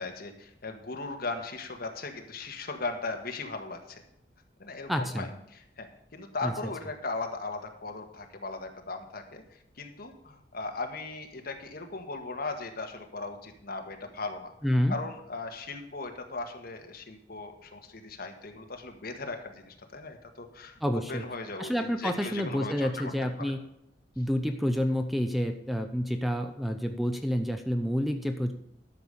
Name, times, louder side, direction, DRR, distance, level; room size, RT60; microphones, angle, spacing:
voice 1, 0.0-4.0 4.6-14.5 14.9-23.1 23.4-23.5, left 3 dB, 55° left, 5 dB, 1.6 m, -38 dB
voice 2, 4.9-5.3 6.4-6.5 14.6-15.0 20.8-21.2 21.6-23.6 24.2-28.5, equal, ahead, 6 dB, 0.7 m, -28 dB
12.0 x 6.7 x 5.5 m, 0.79 s
head